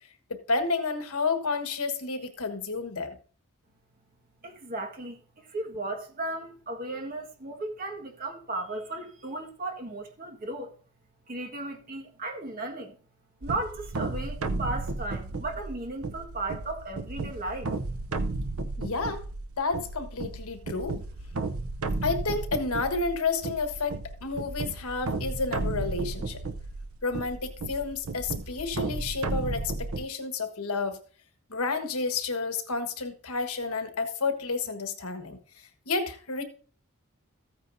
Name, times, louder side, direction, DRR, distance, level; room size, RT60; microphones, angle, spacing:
voice 1, 0.3-3.1 18.8-19.2 19.6-21.0 22.0-24.0 24.2-26.4 27.0-31.0 31.5-35.4 35.9-36.4, left 4 dB, 85° left, 1.4 m, -30 dB
voice 2, 4.4-10.7 11.3-13.0 13.4-17.7, right 2 dB, 40° right, 1.6 m, -35 dB
sound 1, 13.4-30.1, right 3 dB, 75° right, 0.7 m, -34 dB
14.5 x 8.8 x 2.6 m
head